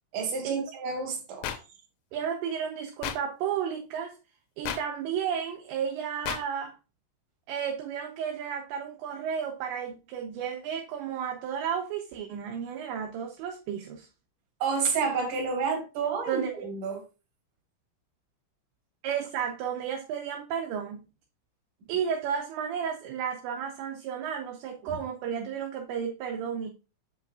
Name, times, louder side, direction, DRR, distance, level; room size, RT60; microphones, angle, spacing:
voice 1, 0.1-1.5 14.6-17.0, right 5 dB, 50° right, 2.9 m, -30 dB
sound 1, 1.4-1.6 3.0-3.2 4.7-4.8 6.3-6.4, left 10 dB, 85° left, 3.3 m, -31 dB
voice 2, 2.1-4.2 4.6-6.7 7.5-14.1 16.3-16.7 19.0-21.1 21.9-26.7, right 8 dB, 80° right, 2.7 m, -32 dB
7.9 x 5.7 x 2.3 m
omnidirectional pair, 5.9 m